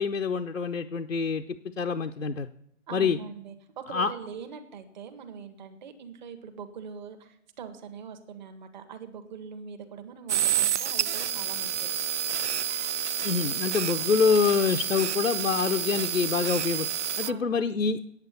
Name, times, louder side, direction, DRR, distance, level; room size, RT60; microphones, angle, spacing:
voice 1, 0.0-1.4 1.8-2.5 2.9-3.2 3.9-4.1 13.2-16.9 17.2-18.0, left 5 dB, 90° left, 5 dB, 0.6 m, -26 dB
voice 2, 2.9-12.0 17.2-17.6, right 6 dB, 35° right, 8 dB, 1.1 m, -42 dB
sound 1, 10.3-17.3, right 9 dB, 65° right, 0.5 m, -29 dB
8.6 x 8.2 x 8.1 m, 0.72 s
figure-of-eight pair, 130°, 38 cm